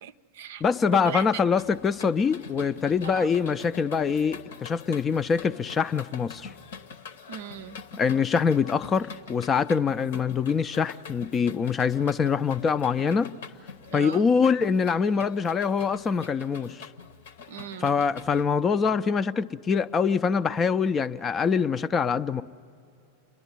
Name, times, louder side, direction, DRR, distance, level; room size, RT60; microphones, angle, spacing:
voice 1, 0.0-0.6 0.9-1.4 3.0-3.3 7.3-7.8 13.8-14.3 17.5-17.9, right 9 dB, 55° right, 13 dB, 0.5 m, -37 dB
voice 2, 0.6-6.5 8.0-13.3 13.9-16.9 17.8-22.4, left 6 dB, 20° left, 14 dB, 0.5 m, -24 dB
sound 1, 1.6-18.4, left 6 dB, 60° left, 0.9 m, -45 dB
28.5 x 11.5 x 9.5 m, 2.5 s
figure-of-eight pair, 90°, 0 cm